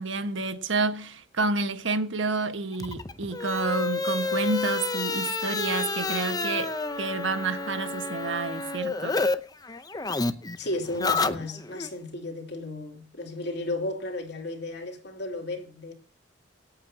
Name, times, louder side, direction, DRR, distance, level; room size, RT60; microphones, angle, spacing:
voice 1, 0.0-9.2, right 3 dB, 75° right, 1.4 m, -29 dB
sound 1, 2.7-9.4 9.6-11.9, left 3 dB, 20° left, 0.7 m, -30 dB
Wind instrument woodwind instrument, 4.2-8.5, equal, 20° right, 1.2 m, -44 dB
voice 2, 10.6-15.9, left 2 dB, 60° left, 2.9 m, -34 dB
26.0 x 8.7 x 2.8 m
head